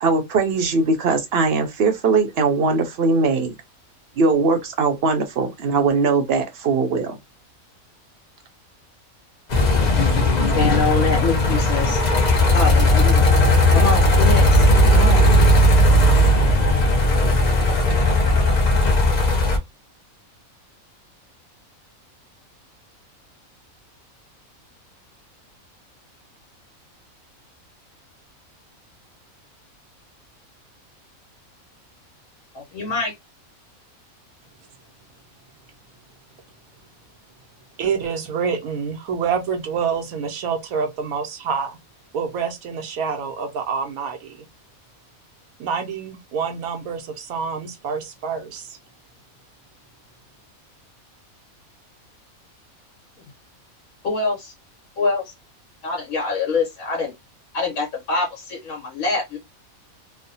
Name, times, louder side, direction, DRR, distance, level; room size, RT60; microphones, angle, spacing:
voice 1, 0.0-3.5 4.2-7.2, right 4 dB, 60° right, 0.7 m, -20 dB
sound 1, 9.5-19.6, left 1 dB, 45° left, 0.6 m, -16 dB
voice 2, 10.6-12.0 12.5-13.3 13.7-15.2 32.5-33.1 54.0-54.5 55.0-55.3 55.8-57.1 57.5-59.4, left 3 dB, 75° left, 1.4 m, -25 dB
voice 3, 37.8-41.8 42.1-44.4 45.6-48.8, right 6 dB, 85° right, 1.1 m, -27 dB
3.1 x 2.1 x 2.6 m
omnidirectional pair, 1.5 m